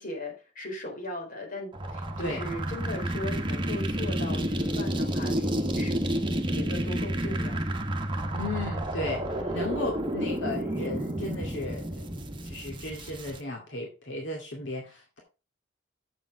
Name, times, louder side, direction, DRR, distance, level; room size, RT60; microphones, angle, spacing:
voice 1, 0.0-7.6 9.3-9.7, left 1 dB, 50° left, 1 dB, 4.1 m, -38 dB
sound 1, 1.7-13.4, right 1 dB, 25° right, 1.3 m, -30 dB
voice 2, 8.3-12.1 12.4-15.2, left 2 dB, 70° left, -1 dB, 2.4 m, -35 dB
7.9 x 7.1 x 4.7 m, 0.31 s
head